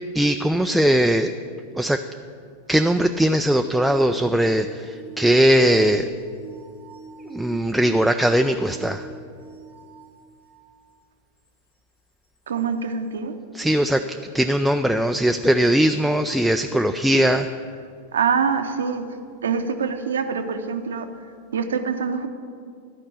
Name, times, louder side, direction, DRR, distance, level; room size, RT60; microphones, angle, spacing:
voice 1, 0.1-1.3 1.7-2.0 2.7-6.1 7.2-9.1 13.5-17.5, right 1 dB, ahead, 6 dB, 0.4 m, -20 dB
sound 1, 3.1-10.8 11.5-11.6 12.6-12.7, right 4 dB, 70° left, 1.5 m, -42 dB
voice 2, 12.5-13.3 18.1-19.0 19.4-21.1 21.5-22.3, right 6 dB, 65° right, 8 dB, 0.8 m, -24 dB
12.0 x 5.3 x 8.4 m, 2.2 s
figure-of-eight pair, 90°, 0 cm